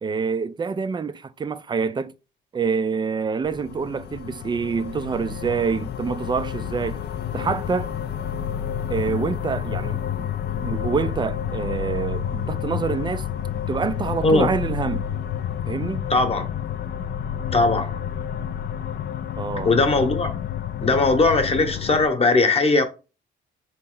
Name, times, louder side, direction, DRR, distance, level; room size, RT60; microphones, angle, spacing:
voice 1, 0.0-2.1 2.5-7.0 7.3-7.9 8.9-10.3 10.6-13.3 13.7-15.1 15.7-16.1 19.4-19.7, right 5 dB, 25° right, 0.3 m, -26 dB
sound 1, 3.4-22.1, left 9 dB, 55° left, 0.5 m, -30 dB
voice 2, 16.1-16.5 17.5-18.0 19.6-20.3 20.8-22.8, left 3 dB, 30° left, 0.9 m, -19 dB
4.1 x 2.9 x 3.7 m
cardioid pair, 90°, 20 cm